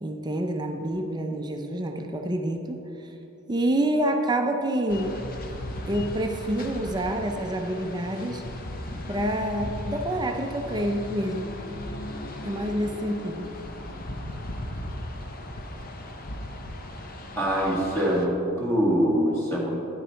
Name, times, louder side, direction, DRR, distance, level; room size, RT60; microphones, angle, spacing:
voice 1, 0.0-2.8 3.5-5.1 5.9-8.4 9.1-11.5 12.4-13.5, right 1 dB, 20° right, 4 dB, 0.5 m, -27 dB
sound 1, 4.9-18.3, left 1 dB, 40° left, 0.7 m, -37 dB
voice 2, 17.4-19.9, equal, 10° left, -5 dB, 1.8 m, -24 dB
10.5 x 6.5 x 4.4 m, 2.9 s
head